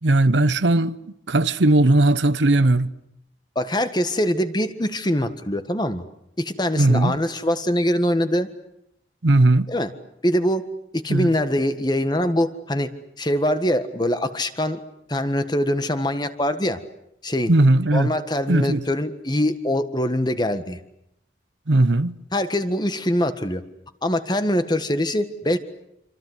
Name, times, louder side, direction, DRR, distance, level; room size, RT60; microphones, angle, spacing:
voice 1, 0.0-1.0 1.3-2.9 6.8-7.2 9.2-9.7 11.1-11.3 17.5-18.1 18.5-18.8 21.7-22.2, right 2 dB, 85° right, 1.0 m, -18 dB
voice 2, 3.5-6.0 6.4-8.5 9.7-9.9 10.2-10.7 10.9-12.9 13.2-14.8 15.1-16.8 17.2-17.5 17.9-20.8 22.3-23.6 24.0-25.6, left 1 dB, 25° left, 1.6 m, -23 dB
27.0 x 26.0 x 8.1 m
head